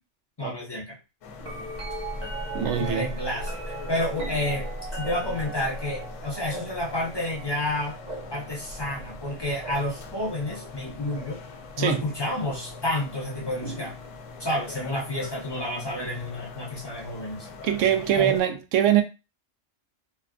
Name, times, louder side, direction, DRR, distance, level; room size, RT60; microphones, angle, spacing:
voice 1, 0.4-0.9 2.8-4.7 5.0-8.0 8.3-11.4 11.8-13.9 14.4-17.5 18.2-18.4, left 1 dB, 25° left, 0.6 m, -30 dB
sound 1, 1.2-18.4, left 4 dB, 80° left, 0.9 m, -43 dB
sound 2, 1.4-11.5 12.4-12.9 13.6-14.6 16.4-16.5, right 2 dB, 35° right, 1.2 m, -38 dB
voice 2, 2.5-3.1 11.8-12.1 17.6-19.0, right 10 dB, 75° right, 0.9 m, -23 dB
3.3 x 2.4 x 2.3 m
omnidirectional pair, 1.3 m